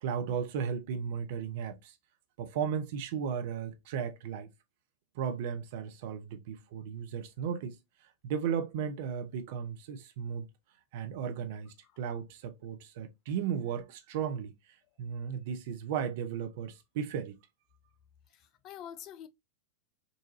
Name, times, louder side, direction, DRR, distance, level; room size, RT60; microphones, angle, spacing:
voice 1, 0.0-1.9 2.4-4.5 5.1-7.8 8.2-10.5 10.9-14.5 15.0-17.3, right 7 dB, 50° right, 0.7 m, -35 dB
voice 2, 18.3-19.3, left 10 dB, 35° left, 0.4 m, -46 dB
4.0 x 2.6 x 2.7 m
figure-of-eight pair, 90°, 0 cm